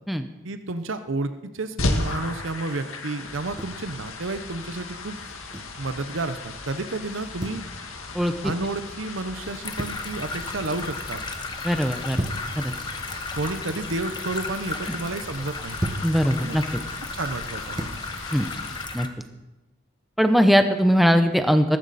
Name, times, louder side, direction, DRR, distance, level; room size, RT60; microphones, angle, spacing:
voice 1, 0.4-5.2 5.8-7.6 8.4-11.2 13.3-15.8 16.4-16.6 17.1-17.9, right 2 dB, 70° right, 9 dB, 0.8 m, -31 dB
sound 1, 1.8-18.8, left 2 dB, 90° left, 1.9 m, -36 dB
sound 2, 3.3-3.9 5.2-5.8 7.1-7.7 9.4-10.1 10.5-11.0 11.8-12.5 13.5-14.1 15.4-16.1 17.3-18.0, right 1 dB, 20° right, 1.3 m, -35 dB
voice 2, 8.1-8.5 11.6-12.2 12.6-12.7 16.0-16.6 18.3-18.5 18.9-19.1 20.2-21.8, equal, ahead, 7 dB, 0.7 m, -20 dB
sound 3, 9.6-19.1, left 3 dB, 20° left, 1.0 m, -35 dB
20.5 x 12.0 x 4.2 m, 1.1 s
head